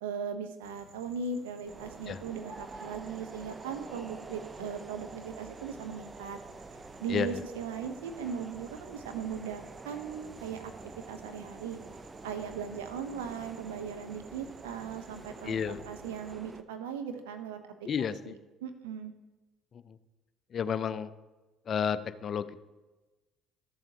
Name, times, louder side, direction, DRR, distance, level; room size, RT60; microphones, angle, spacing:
voice 1, 0.0-6.4 7.0-10.6 11.1-11.8 12.2-15.6 15.8-17.6 18.0-18.3 18.6-19.1, right 6 dB, 85° right, 8 dB, 0.7 m, -38 dB
sound 1, 0.6-16.3, right 5 dB, 65° right, 1.1 m, -57 dB
sound 2, 1.7-16.6, right 3 dB, 25° right, 0.5 m, -47 dB
voice 2, 7.1-7.5 15.4-15.8 17.8-18.4 19.7-20.0 20.5-21.1 21.7-22.6, left 7 dB, 45° left, 14 dB, 0.4 m, -32 dB
13.0 x 7.2 x 2.8 m, 1.2 s
hypercardioid pair, 65°, 0 cm